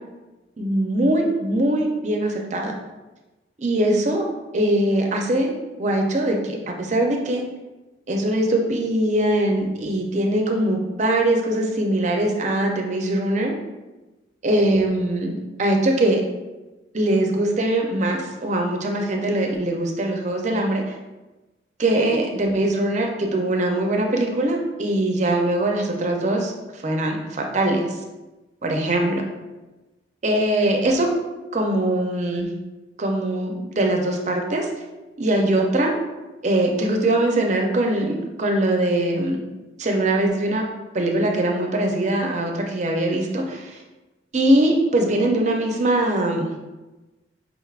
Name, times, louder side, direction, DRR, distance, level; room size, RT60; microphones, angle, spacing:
voice 1, 0.6-2.7 3.6-4.2 4.5-7.4 8.1-13.5 14.4-16.2 16.9-20.9 21.8-27.9 28.6-29.2 30.2-31.1 31.5-32.5 33.0-34.7 35.2-35.9 36.4-39.4 39.8-40.7 40.9-43.8 44.3-46.5, right 1 dB, 40° right, 2 dB, 0.5 m, -22 dB
5.1 x 3.3 x 2.4 m, 1.1 s
head